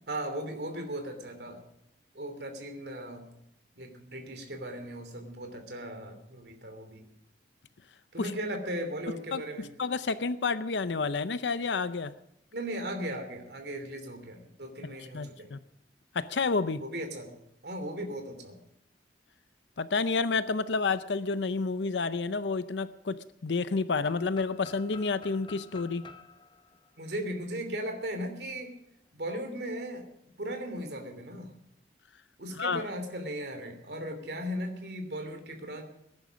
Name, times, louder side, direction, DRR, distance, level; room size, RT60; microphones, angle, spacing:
voice 1, 0.1-1.6 2.1-3.2 3.8-7.1 8.1-9.7 12.5-15.5 16.8-17.4 17.6-18.6 27.0-28.7 29.1-30.0 30.4-31.5 32.4-35.8, right 1 dB, 65° right, 6 dB, 2.9 m, -37 dB
voice 2, 9.3-12.1 15.1-15.6 16.1-16.8 19.8-23.2 23.4-26.0 32.5-32.8, left 4 dB, 90° left, 13 dB, 0.6 m, -30 dB
sound 1, 24.0-27.9, left 5 dB, 30° left, 0.9 m, -51 dB
19.5 x 10.5 x 6.3 m, 0.79 s
head